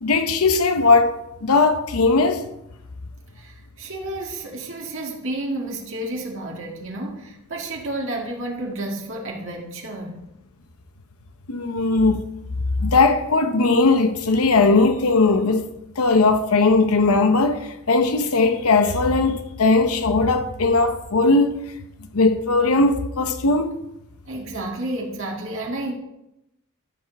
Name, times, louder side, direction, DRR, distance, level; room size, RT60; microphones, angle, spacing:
voice 1, 0.0-2.4 11.5-12.2 12.8-15.7 16.0-21.6 22.1-23.8, left 3 dB, 85° left, 0.8 m, -18 dB
voice 2, 3.3-10.2 24.3-25.9, right 1 dB, 60° right, 1.9 m, -31 dB
13.0 x 5.3 x 6.3 m
head